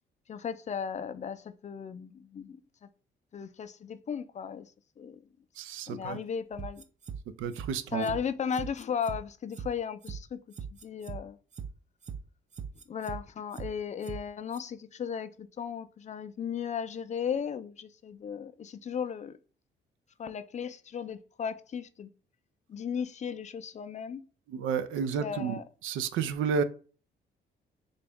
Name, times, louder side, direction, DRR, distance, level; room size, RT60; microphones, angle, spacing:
voice 1, 0.3-2.9 3.3-4.7 5.0-5.2 5.9-6.8 7.9-10.4 10.7-11.4 12.9-19.4 20.2-22.1 22.7-24.2 25.1-25.7, left 7 dB, 35° left, 0.4 m, -36 dB
voice 2, 5.6-6.2 7.4-8.1 24.5-25.6 25.8-26.6, right 6 dB, 85° right, 0.5 m, -31 dB
sound 1, 6.6-7.2 7.5-7.7 8.0-8.2 8.5-9.2 9.5-9.7 10.0-10.2 10.5-11.2 11.5-11.7 12.0-12.2 12.5-13.2 13.5-13.7 14.0-14.2 14.5-14.6, right 7 dB, 35° right, 0.5 m, -39 dB
3.9 x 2.3 x 3.4 m
cardioid pair, 90°, 20 cm